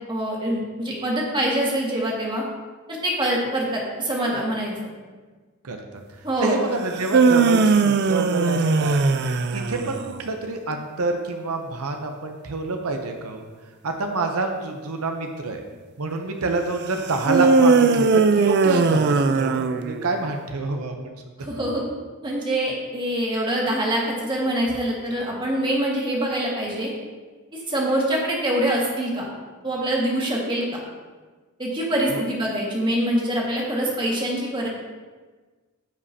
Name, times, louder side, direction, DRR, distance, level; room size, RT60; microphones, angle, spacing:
voice 1, 0.1-2.4 2.9-4.8 6.2-6.6 21.4-21.8 22.2-26.9 27.5-29.3 29.6-30.8 31.6-34.7, right 1 dB, 20° right, -3 dB, 1.7 m, -24 dB
voice 2, 5.6-6.0 6.4-9.0 9.5-13.4 13.8-15.6 16.0-21.1 21.4-21.5 32.1-32.2, right 3 dB, 85° right, 4 dB, 0.7 m, -27 dB
sound 1, 6.9-10.1 17.3-20.2, right 4 dB, 50° right, 0.4 m, -19 dB
14.5 x 5.3 x 2.8 m, 1.4 s
head